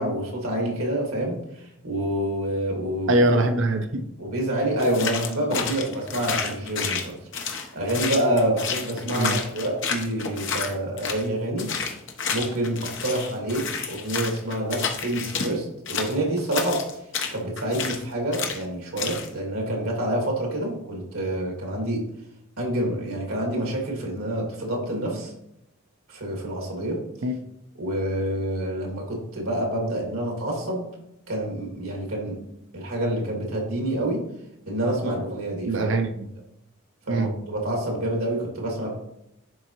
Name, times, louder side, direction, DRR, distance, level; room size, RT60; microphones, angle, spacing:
voice 1, 0.0-1.4 1.8-3.3 4.2-7.1 7.7-11.7 12.3-16.8 17.3-22.0 22.6-25.3 26.1-27.0 27.8-30.9 31.3-32.4 32.7-34.2 34.7-35.9 37.1-38.9, right 1 dB, 85° right, 0 dB, 2.1 m, -27 dB
voice 2, 3.1-4.0 9.2-9.4 27.2-27.4 35.7-36.3 37.1-37.3, right 2 dB, 60° right, 7 dB, 0.6 m, -22 dB
sound 1, 4.8-11.3 11.6-15.5 15.9-18.0 18.3-18.6 19.0-19.3, left 6 dB, 60° left, 0.9 m, -30 dB
10.5 x 3.8 x 3.0 m, 0.81 s
head